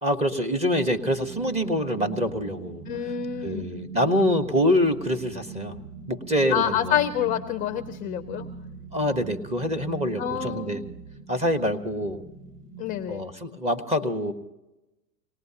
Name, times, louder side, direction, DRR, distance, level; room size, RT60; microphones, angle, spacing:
voice 1, 0.0-2.8 3.4-5.7 6.1-7.0 8.9-10.8 11.3-12.2 13.1-14.3, equal, 15° right, 7 dB, 1.1 m, -25 dB
sound 1, 0.9-13.1, right 5 dB, 70° right, 2.7 m, -41 dB
voice 2, 2.9-3.6 6.5-8.5 10.2-10.8 12.8-13.2, left 10 dB, 20° left, 10 dB, 0.5 m, -27 dB
26.0 x 19.0 x 2.9 m, 1.0 s
hypercardioid pair, 120°, 48 cm